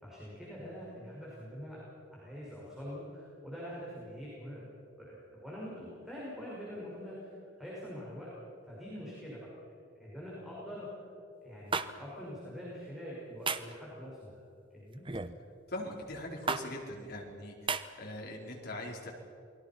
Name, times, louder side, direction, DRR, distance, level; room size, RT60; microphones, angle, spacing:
voice 1, 0.0-1.8 2.1-4.6 5.0-8.3 8.7-9.5 9.9-10.9 11.4-14.4 14.7-15.0, equal, ahead, -7 dB, 5.9 m, -44 dB
sound 1, 11.7-11.9 13.5-13.7 15.1-15.4 16.5-16.6 17.7-17.8, right 4 dB, 25° right, 0.9 m, -32 dB
voice 2, 15.7-19.1, left 1 dB, 55° left, -1 dB, 4.7 m, -41 dB
29.0 x 22.0 x 5.9 m, 2.6 s
head